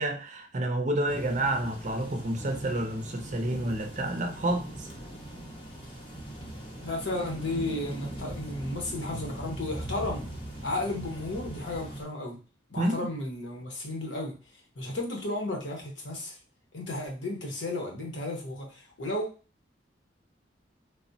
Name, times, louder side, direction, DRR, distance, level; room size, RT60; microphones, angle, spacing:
voice 1, 0.0-4.9 12.8-13.1, right 1 dB, 40° right, 0.5 m, -29 dB
sound 1, 1.1-12.0, right 1 dB, 30° left, 0.8 m, -40 dB
voice 2, 6.8-10.3 10.6-12.4 12.7-14.3 14.8-16.3 16.7-19.3, left 2 dB, 80° left, 0.9 m, -33 dB
3.3 x 2.1 x 2.6 m
head